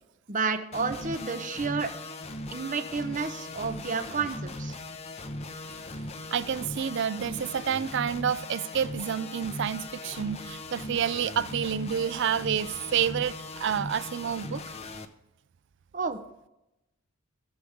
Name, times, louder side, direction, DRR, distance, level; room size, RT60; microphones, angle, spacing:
voice 1, 0.3-1.9 2.5-4.8 15.9-16.2, right 4 dB, 35° right, 0.7 m, -30 dB
sound 1, 0.7-15.0, left 2 dB, 30° left, 0.6 m, -39 dB
voice 2, 6.3-14.6, right 8 dB, 55° right, 0.4 m, -29 dB
16.5 x 6.9 x 3.6 m
head